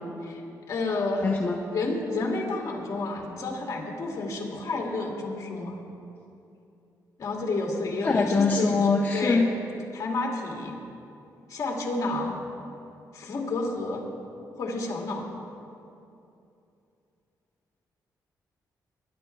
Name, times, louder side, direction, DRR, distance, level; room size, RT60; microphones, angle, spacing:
voice 1, 0.7-1.3 1.7-5.8 7.2-8.9 9.1-9.5 9.9-10.8 11.5-12.4 13.1-14.1 14.6-15.3, left 2 dB, 50° left, -1 dB, 2.2 m, -30 dB
voice 2, 1.2-1.6 8.0-9.5, left 4 dB, 25° left, 0 dB, 0.7 m, -23 dB
21.5 x 10.5 x 3.3 m, 2.7 s
cardioid pair, 135°, 7 cm